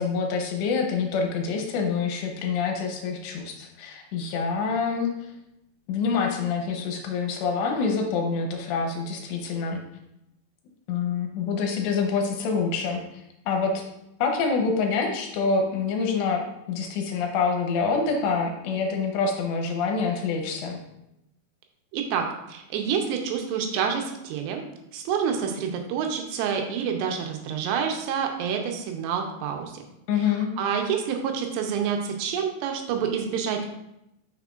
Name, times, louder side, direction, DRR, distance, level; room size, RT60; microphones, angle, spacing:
voice 1, 0.0-5.1 5.9-9.8 10.9-13.0 13.5-13.8 14.2-20.8 30.1-30.5, left 5 dB, 80° left, 2 dB, 3.0 m, -26 dB
voice 2, 21.9-24.6 24.9-29.7 30.2-33.7, right 7 dB, 80° right, 3 dB, 2.9 m, -28 dB
7.3 x 6.4 x 2.4 m, 0.84 s
omnidirectional pair, 5.0 m